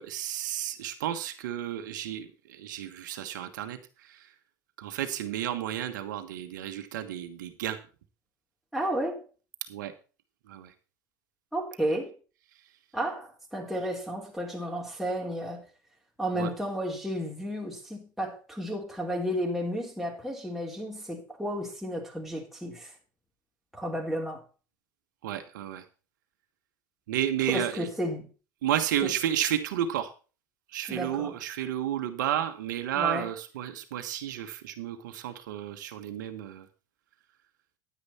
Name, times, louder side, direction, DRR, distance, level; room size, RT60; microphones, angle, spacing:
voice 1, 0.0-3.8 4.1-4.2 4.8-7.8 9.7-9.9 10.5-10.7 16.3-16.5 25.2-25.8 27.1-27.9 28.6-30.1 30.7-36.7, right 11 dB, 75° right, 1.4 m, -32 dB
voice 2, 8.7-9.2 11.5-12.1 12.9-15.6 16.2-22.9 23.7-24.4 27.5-28.2 29.0-29.1 30.9-31.3 32.9-33.3, equal, ahead, 3.4 m, -32 dB
9.8 x 9.7 x 4.4 m
hypercardioid pair, 80°, 10 cm